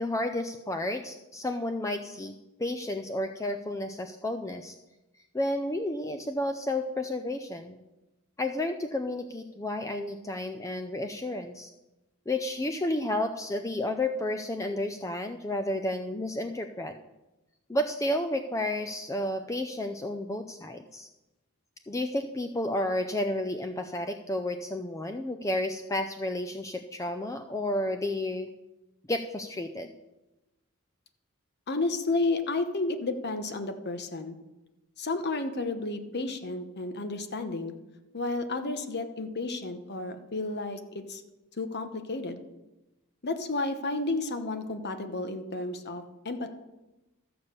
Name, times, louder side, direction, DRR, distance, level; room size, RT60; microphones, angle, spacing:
voice 1, 0.0-2.3 2.6-4.8 5.3-7.8 8.4-11.7 12.3-16.9 17.7-21.1 21.9-28.5 29.1-29.9, left 1 dB, 15° left, 7 dB, 0.5 m, -31 dB
voice 2, 31.7-34.4 35.0-37.8 38.1-40.8 41.1-41.2 41.6-42.4 43.2-46.5, left 2 dB, 50° left, 8 dB, 1.1 m, -32 dB
13.0 x 7.1 x 6.7 m, 1.0 s
head